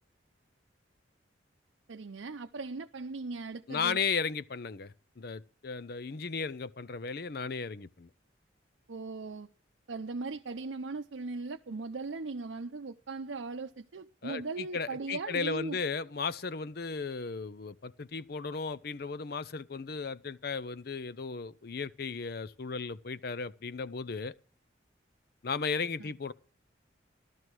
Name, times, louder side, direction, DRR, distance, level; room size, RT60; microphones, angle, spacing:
voice 1, 1.9-4.0 8.9-9.5 9.9-15.8 26.0-26.1, right 3 dB, 80° right, 0.6 m, -38 dB
voice 2, 3.7-8.1 14.2-24.3 25.4-26.3, left 5 dB, 55° left, 0.6 m, -35 dB
14.0 x 12.5 x 4.7 m
head